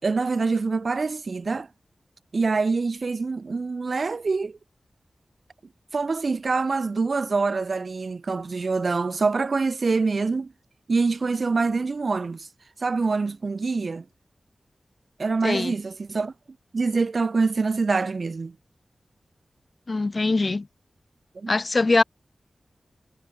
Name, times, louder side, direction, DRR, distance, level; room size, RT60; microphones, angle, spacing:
voice 1, 0.0-1.7 2.3-4.6 5.9-10.5 10.9-12.5 12.8-14.0 15.2-16.3 16.7-18.5 21.4-21.5, right 4 dB, 60° right, 5.5 m, -25 dB
voice 2, 15.4-15.7 19.9-20.7 21.5-22.0, left 3 dB, 45° left, 3.7 m, -22 dB
wide cardioid pair, 85°, 0 cm